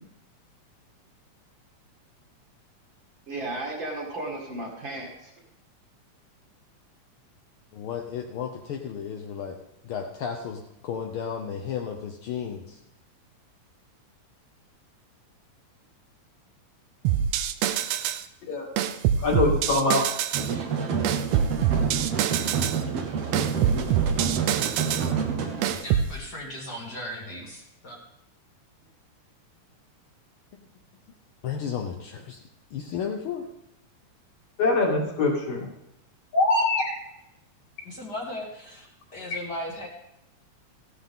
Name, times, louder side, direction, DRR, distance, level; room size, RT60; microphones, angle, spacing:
voice 1, 3.3-5.3, right 2 dB, 40° right, -1 dB, 2.6 m, -34 dB
voice 2, 7.7-9.6 9.8-12.8 30.5-30.6 31.4-32.4 32.7-33.4, left 7 dB, 75° left, 2 dB, 1.2 m, -33 dB
sound 1, 17.0-18.2 18.8-20.5 21.0-22.8 23.3-25.1 25.6-26.1, right 9 dB, 80° right, 1.6 m, -25 dB
voice 3, 19.2-20.1 34.6-35.7 36.3-36.9, left 3 dB, 55° left, -3 dB, 3.4 m, -23 dB
sound 2, 20.3-25.7, right 6 dB, 60° right, 1.9 m, -28 dB
voice 4, 25.6-28.0 37.8-39.9, left 1 dB, 40° left, -1 dB, 2.0 m, -37 dB
15.0 x 11.5 x 3.7 m, 0.84 s
omnidirectional pair, 3.5 m